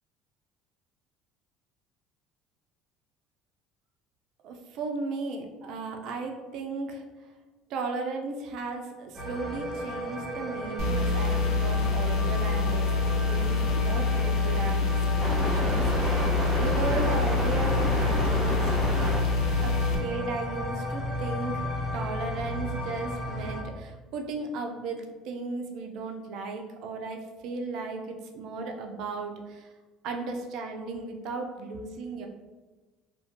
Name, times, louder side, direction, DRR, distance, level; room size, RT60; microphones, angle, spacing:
voice 1, 4.4-7.0 7.7-18.8 19.6-21.7 21.9-29.7 30.0-32.3, right 4 dB, 65° right, 4 dB, 0.4 m, -36 dB
sound 1, 9.1-23.6, equal, 10° right, 1.0 m, -32 dB
sound 2, 10.8-20.0, left 3 dB, 70° left, 0.5 m, -26 dB
2.4 x 2.1 x 2.6 m, 1.2 s
supercardioid pair, 95°, 0 cm